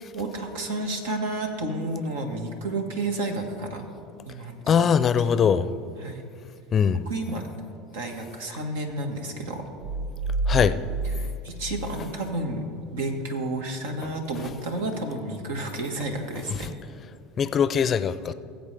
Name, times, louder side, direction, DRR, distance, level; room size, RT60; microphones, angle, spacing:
voice 1, 0.1-3.8 4.2-4.7 5.3-5.5 6.0-6.2 7.0-7.4 7.9-9.6 11.0-12.6 12.9-16.7, right 2 dB, 85° right, 3 dB, 1.6 m, -31 dB
voice 2, 4.7-5.7 6.7-7.0 10.5-10.8 17.4-18.3, left 7 dB, 35° left, 14 dB, 0.5 m, -21 dB
sound 1, 9.8-12.6, right 2 dB, 65° right, 0.5 m, -30 dB
19.5 x 8.0 x 3.4 m, 2.5 s
supercardioid pair, 100°, 0 cm